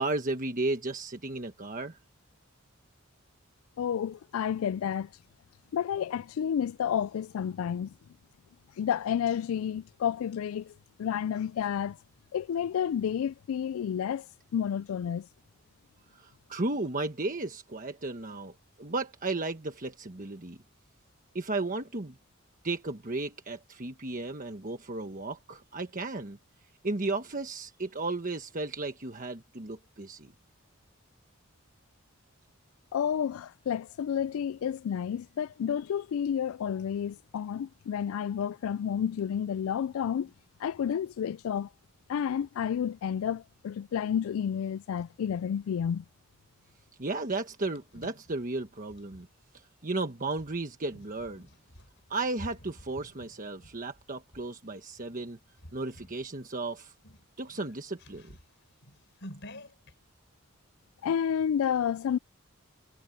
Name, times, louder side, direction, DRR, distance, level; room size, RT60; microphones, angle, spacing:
voice 1, 0.0-2.0 16.1-18.5 18.8-20.6 21.3-22.2 22.6-26.4 26.8-30.3 47.0-49.3 49.5-51.4 52.1-55.4 55.7-56.9 57.4-58.4, right 2 dB, 40° right, 1.3 m, -34 dB
voice 2, 3.8-5.1 5.7-7.9 8.8-10.6 11.0-12.0 12.3-14.2 14.5-15.2 32.9-40.3 40.6-41.7 42.1-46.0 61.0-62.2, left 8 dB, 75° left, 0.3 m, -30 dB
sound 1, 47.3-49.3 50.2-54.5 55.0-55.2 55.6-56.2 56.6-56.7 57.0-59.9, left 1 dB, 55° left, 6.4 m, -50 dB
head